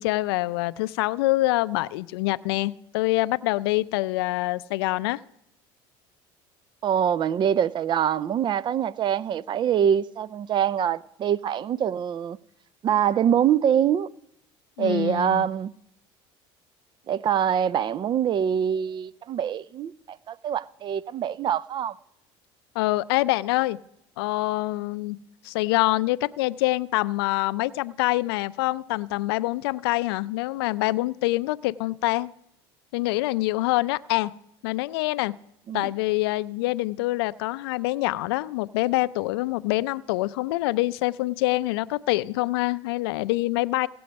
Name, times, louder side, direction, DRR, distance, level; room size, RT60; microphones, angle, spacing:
voice 1, 0.0-5.2 14.8-15.5 22.8-23.8 24.2-25.2 25.4-32.3 32.9-34.3 34.6-35.3 35.7-43.9, left 19 dB, 85° left, 0.4 m, -25 dB
voice 2, 6.8-12.4 12.8-14.1 14.8-15.7 17.1-21.9 35.7-35.9, right 9 dB, 40° right, 0.4 m, -24 dB
16.5 x 7.6 x 5.2 m
supercardioid pair, 95°, 13 cm